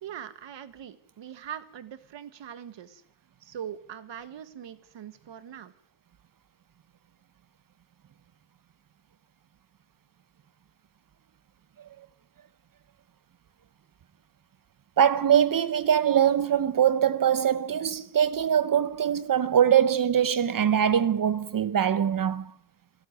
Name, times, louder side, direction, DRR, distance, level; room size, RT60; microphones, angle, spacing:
voice 1, 0.0-3.0 3.4-5.7, right 9 dB, 75° right, 1.5 m, -41 dB
voice 2, 15.0-22.5, right 9 dB, 50° right, 0.8 m, -23 dB
25.5 x 12.5 x 9.3 m
cardioid pair, 110°, 44 cm